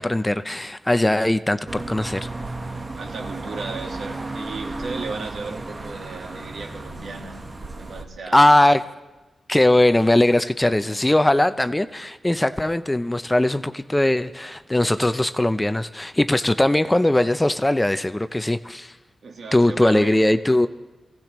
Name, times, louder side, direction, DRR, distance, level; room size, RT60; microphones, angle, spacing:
voice 1, 0.0-2.3 8.3-8.8 9.5-18.9 19.5-20.7, left 1 dB, 10° left, 12 dB, 0.4 m, -20 dB
sound 1, 1.7-8.0, right 2 dB, 30° right, 1.0 m, -34 dB
voice 2, 2.9-7.5 7.7-8.6 19.2-20.2, right 4 dB, 80° right, 2 dB, 1.6 m, -35 dB
24.0 x 16.5 x 3.0 m, 1.1 s
wide cardioid pair, 130°, 0 cm